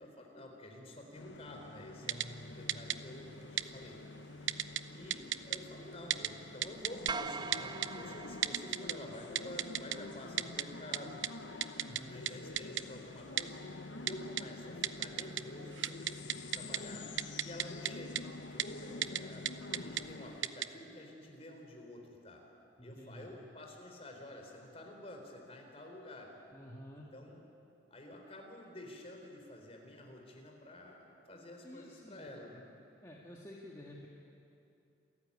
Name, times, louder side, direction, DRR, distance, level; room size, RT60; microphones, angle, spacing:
voice 1, 0.0-4.0 4.3-11.3 12.1-17.1 17.4-22.4 22.8-26.3 27.0-27.4 27.9-32.7, left 1 dB, 35° left, 2 dB, 3.9 m, -50 dB
sound 1, 1.1-20.4, left 2 dB, 80° left, 1.0 m, -48 dB
voice 2, 2.0-3.0 11.7-12.2 22.8-23.3 26.5-27.1 31.6-32.3 33.0-34.1, equal, 20° left, -3 dB, 1.9 m, -51 dB
Typing, 2.1-2.3 2.7-3.0 3.6-3.7 4.5-4.8 5.1-5.6 6.1-6.3 6.6-7.1 7.5-7.9 8.4-8.9 9.4-10.0 10.4-10.6 10.9-11.0 11.2-11.3 11.6-12.0 12.3-12.4 12.6-12.8 13.4-13.5 14.1-14.4 14.8-15.4 15.7-16.8 17.2-17.9 18.2-18.3 18.6-18.7 19.0-19.2 19.5-20.0 20.4-20.7, right 12 dB, 85° right, 0.7 m, -33 dB
sound 2, 7.1-9.4, right 4 dB, 25° right, 0.5 m, -42 dB
27.5 x 14.5 x 9.8 m, 2.7 s
head